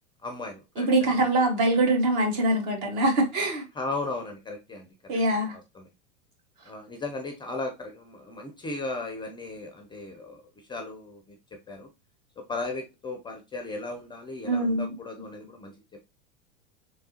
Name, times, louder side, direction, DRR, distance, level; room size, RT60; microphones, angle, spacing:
voice 1, 0.2-1.2 3.8-5.1 5.5-5.9 6.6-11.4 11.7-11.9 12.4-15.7, left 3 dB, 15° left, 0.5 m, -36 dB
voice 2, 0.8-3.7 5.1-5.6 14.4-14.9, right 2 dB, 50° right, 1.6 m, -23 dB
3.4 x 3.1 x 2.8 m
figure-of-eight pair, 85°, 34 cm